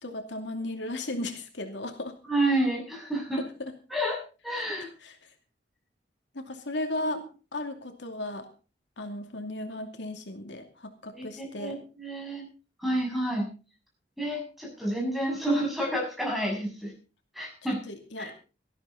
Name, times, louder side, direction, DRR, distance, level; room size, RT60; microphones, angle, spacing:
voice 1, 0.0-2.2 3.6-3.7 5.0-5.2 6.3-7.2 7.5-8.5 9.0-11.8 17.9-18.3, left 2 dB, 75° left, 5 dB, 2.5 m, -35 dB
voice 2, 2.3-3.4 3.9-4.9 7.0-7.1 11.1-12.5 12.8-13.5 14.2-16.9 17.3-17.8 18.2-18.3, right 1 dB, ahead, -1 dB, 6.7 m, -29 dB
18.5 x 13.5 x 4.0 m, 0.35 s
head